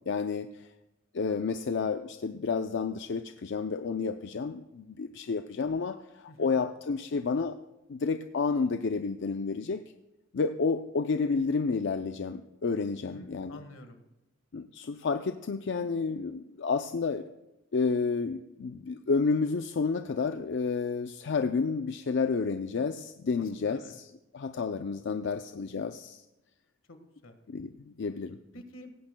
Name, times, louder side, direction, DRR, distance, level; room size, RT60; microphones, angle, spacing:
voice 1, 0.1-0.7 1.1-7.6 7.9-9.9 10.3-13.6 14.5-17.3 17.7-24.1 24.3-26.2 27.5-28.4, left 4 dB, 65° left, 8 dB, 0.5 m, -30 dB
voice 2, 13.0-14.1 23.4-23.9 26.9-27.4 28.5-28.9, left 1 dB, 85° left, 7 dB, 1.6 m, -49 dB
17.5 x 15.0 x 2.2 m, 0.99 s
head